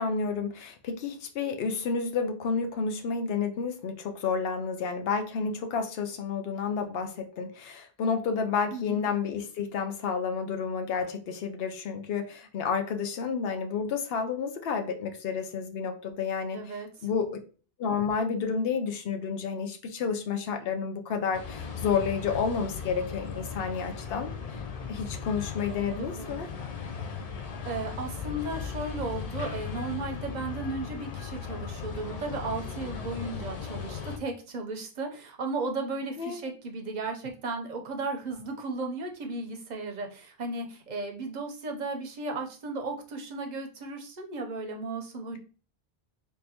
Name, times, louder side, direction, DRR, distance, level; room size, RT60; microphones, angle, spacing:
voice 1, 0.0-16.6 17.0-17.3 17.8-24.6 24.9-26.5 36.2-36.4, left 5 dB, 70° left, 6 dB, 0.8 m, -30 dB
voice 2, 8.7-9.1 16.5-16.9 25.9-26.4 27.6-45.4, right 3 dB, 50° right, 3 dB, 0.7 m, -35 dB
sound 1, 21.3-34.2, left 6 dB, 50° left, 0.5 m, -37 dB
3.7 x 2.6 x 2.8 m, 0.38 s
omnidirectional pair, 1.1 m